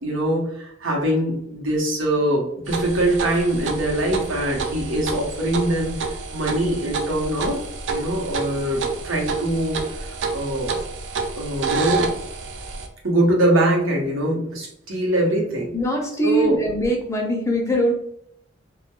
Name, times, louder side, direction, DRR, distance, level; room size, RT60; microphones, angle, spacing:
voice 1, 0.0-5.9 6.3-7.6 7.9-10.8 11.4-12.1 13.0-15.7 16.2-16.6, right 1 dB, 90° right, -1 dB, 0.8 m, -23 dB
sound 1, 2.7-12.9, right 4 dB, 65° right, 0.3 m, -29 dB
voice 2, 15.7-17.9, equal, 15° left, 1 dB, 0.4 m, -22 dB
2.2 x 2.1 x 2.9 m, 0.70 s
head